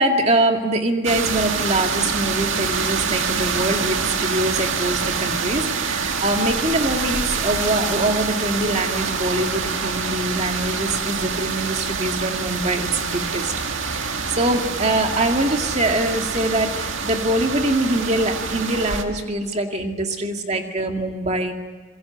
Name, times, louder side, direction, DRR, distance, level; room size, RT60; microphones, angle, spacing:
voice 1, 0.0-13.5 13.9-21.5, right 1 dB, 35° right, 3 dB, 2.3 m, -23 dB
sound 1, 1.0-19.0, right 5 dB, 75° right, 2.0 m, -26 dB
28.5 x 22.5 x 8.0 m, 1.4 s
head